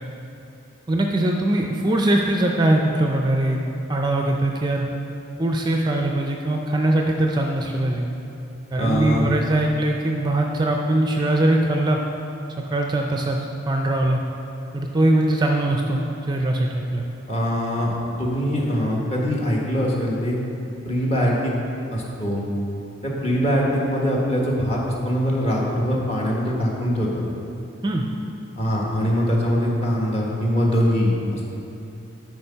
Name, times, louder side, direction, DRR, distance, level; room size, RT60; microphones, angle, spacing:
voice 1, 0.9-3.6 3.9-4.9 5.4-8.1 8.7-12.0 12.7-14.2 14.7-17.0 27.8-28.1, right 1 dB, 20° right, 1 dB, 0.5 m, -21 dB
voice 2, 8.8-9.3 17.3-20.4 20.8-21.5 21.9-22.4 23.0-27.2 28.6-31.5, equal, 30° left, -4 dB, 1.5 m, -22 dB
12.0 x 4.7 x 5.7 m, 2.8 s
head